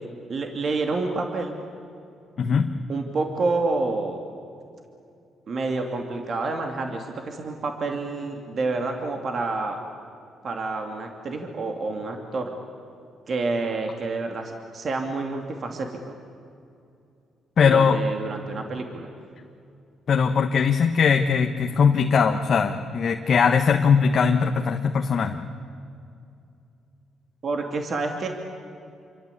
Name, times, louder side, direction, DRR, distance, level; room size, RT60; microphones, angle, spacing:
voice 1, 0.3-1.6 2.9-4.2 5.5-9.8 10.4-12.5 13.3-16.2 17.6-19.1 27.4-28.3, right 3 dB, 50° right, 3 dB, 2.7 m, -28 dB
voice 2, 2.4-2.7 17.6-18.0 20.1-25.4, left 6 dB, 55° left, 4 dB, 1.3 m, -20 dB
28.0 x 24.0 x 8.5 m, 2.5 s
cardioid pair, 90°, 0 cm